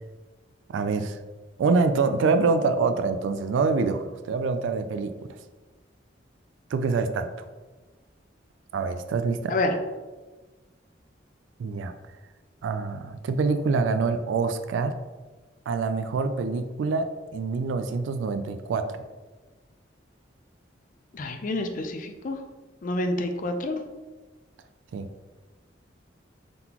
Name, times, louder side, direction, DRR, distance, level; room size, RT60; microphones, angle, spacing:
voice 1, 0.7-1.2 1.6-5.1 6.7-7.5 8.7-9.6 11.6-11.9 12.6-14.9 15.7-18.9 24.9-25.1, right 4 dB, 80° right, 9 dB, 0.3 m, -25 dB
voice 2, 21.1-22.4 22.8-23.8, left 2 dB, 45° left, 6 dB, 0.4 m, -28 dB
3.8 x 3.7 x 2.9 m, 1.3 s
head